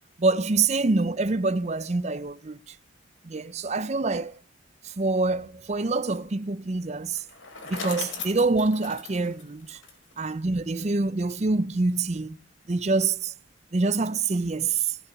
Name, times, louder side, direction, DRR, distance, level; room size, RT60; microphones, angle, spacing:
voice 1, 0.2-2.8 3.2-4.4 4.8-7.2 7.7-9.8 10.2-12.4 12.7-13.3 13.7-15.0, right 3 dB, 35° right, 0.5 m, -26 dB
Bicycle, 7.1-10.3, left 4 dB, 80° left, 3.8 m, -38 dB
16.5 x 6.9 x 7.9 m
head